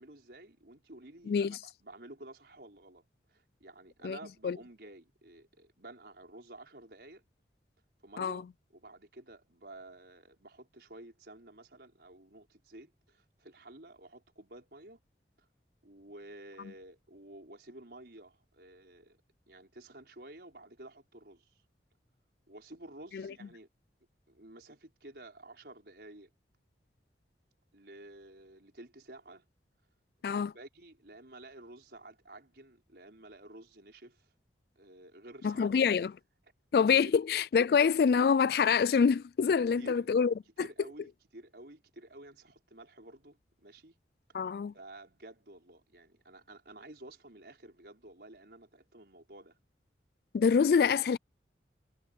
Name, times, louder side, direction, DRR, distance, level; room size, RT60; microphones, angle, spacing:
voice 1, 0.0-3.0 3.3-7.2 8.0-15.0 15.4-15.5 15.8-19.2 19.5-21.6 22.5-23.7 24.3-26.3 27.7-29.4 30.2-34.3 34.7-35.9 37.0-37.1 39.8-40.1 40.6-44.0 44.7-49.6, right 1 dB, 65° right, 4.9 m, -52 dB
voice 2, 1.3-1.6 4.0-4.2 4.4-4.6 8.2-8.4 23.1-23.2 30.2-30.5 35.4-36.1 36.7-40.7 44.3-44.7 50.3-51.2, left 6 dB, 60° left, 0.3 m, -26 dB
head